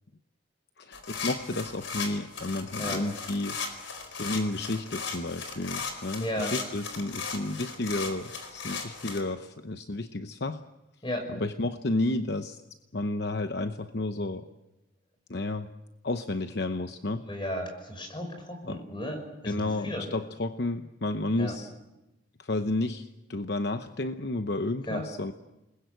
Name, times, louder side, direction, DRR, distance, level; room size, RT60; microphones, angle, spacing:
voice 1, 0.8-3.6 4.1-10.6 11.3-12.6 12.9-14.5 15.3-15.7 16.0-17.3 18.7-18.8 19.4-21.7 22.4-25.3, left 2 dB, 55° left, 8 dB, 0.9 m, -31 dB
sound 1, 0.9-9.2, left 5 dB, 80° left, 4.6 m, -36 dB
voice 2, 6.2-6.5 11.0-11.3 17.3-19.2 19.4-20.1 21.4-21.5 24.9-25.0, equal, 25° left, 6 dB, 5.7 m, -34 dB
28.5 x 21.0 x 7.9 m, 0.96 s
head